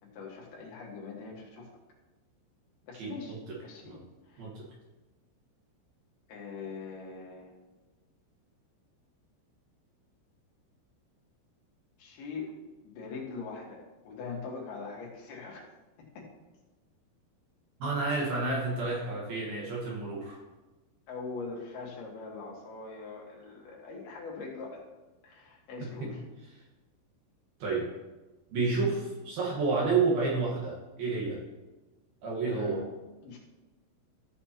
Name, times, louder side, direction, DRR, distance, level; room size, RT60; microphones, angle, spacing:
voice 1, 0.0-1.7 2.8-3.3 3.6-4.5 6.3-7.5 12.0-12.5 12.8-15.6 16.0-16.3 21.1-24.8 25.2-26.2 32.4-32.8 33.2-33.4, left 4 dB, 65° left, -2 dB, 3.0 m, -42 dB
voice 2, 3.0-3.4 3.8-4.0 4.4-4.6 17.8-20.4 25.8-26.1 27.6-27.8 28.5-31.4 32.2-32.8, right 4 dB, 65° right, -4 dB, 2.8 m, -30 dB
14.5 x 6.5 x 2.9 m, 1.2 s
omnidirectional pair, 5.7 m